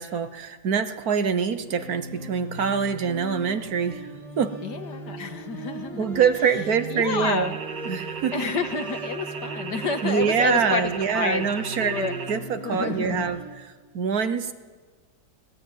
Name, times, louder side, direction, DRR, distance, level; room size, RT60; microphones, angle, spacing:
voice 1, 0.0-4.1 4.4-4.5 6.0-7.5 7.9-8.3 10.0-13.4 13.9-14.5, right 6 dB, 65° right, 11 dB, 1.4 m, -25 dB
sound 1, 1.6-13.4, right 2 dB, ahead, 7.7 m, -39 dB
voice 2, 4.6-6.2 6.9-7.6 8.3-11.5 11.8-12.1 12.6-13.3, left 5 dB, 75° left, 8 dB, 2.1 m, -29 dB
sound 2, 7.3-12.4, right 6 dB, 85° right, 1.8 m, -36 dB
19.5 x 19.0 x 9.3 m, 1.4 s
omnidirectional pair, 1.8 m